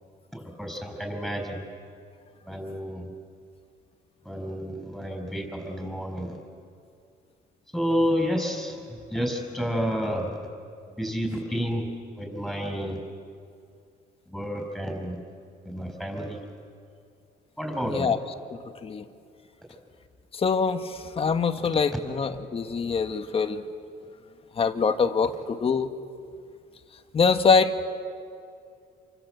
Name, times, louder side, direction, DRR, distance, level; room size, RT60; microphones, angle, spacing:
voice 1, 0.3-1.6 2.4-3.0 4.3-6.3 7.7-8.8 9.1-10.3 11.0-11.9 12.2-13.0 14.3-15.2 15.6-16.4 17.6-18.1, equal, ahead, 2 dB, 5.7 m, -30 dB
voice 2, 17.9-18.2 18.5-19.0 20.3-23.6 24.6-25.9 27.1-27.8, left 5 dB, 35° left, 8 dB, 1.5 m, -24 dB
28.0 x 24.5 x 8.1 m, 2.4 s
cardioid pair, 110°, 17 cm